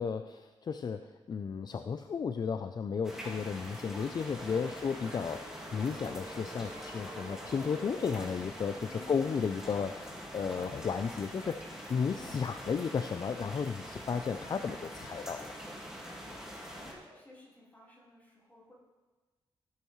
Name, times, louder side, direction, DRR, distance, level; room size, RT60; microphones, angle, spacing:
voice 1, 0.0-15.5, left 6 dB, 45° left, 8 dB, 0.4 m, -34 dB
sound 1, 3.0-16.9, equal, 5° right, 1.9 m, -44 dB
sound 2, 4.3-8.2, right 1 dB, 30° right, 2.8 m, -48 dB
voice 2, 8.8-9.5 16.1-18.7, left 2 dB, 15° left, -7 dB, 3.9 m, -57 dB
16.0 x 8.6 x 3.1 m, 1.3 s
wide cardioid pair, 110°, 10 cm